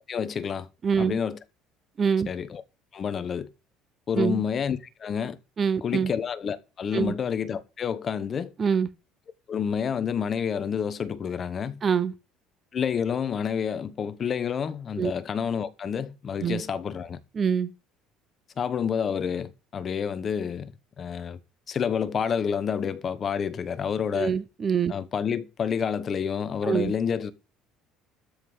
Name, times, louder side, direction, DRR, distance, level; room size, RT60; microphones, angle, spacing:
voice 1, 0.0-0.7 1.0-1.4 2.3-2.6 2.9-3.5 4.1-5.4 5.8-8.5 9.5-11.8 12.7-17.2 18.6-20.7 21.0-21.4 21.7-24.3 24.9-27.3, left 7 dB, 30° left, 1.1 m, -29 dB
voice 2, 0.8-1.2 2.0-2.3 4.1-4.4 5.6-6.1 6.9-7.2 8.6-8.9 11.8-12.1 15.0-15.1 16.4-16.6 17.3-17.7 24.1-25.0 26.6-26.9, right 6 dB, 25° right, 0.9 m, -25 dB
13.0 x 5.4 x 8.0 m
cardioid pair, 145°, 0 cm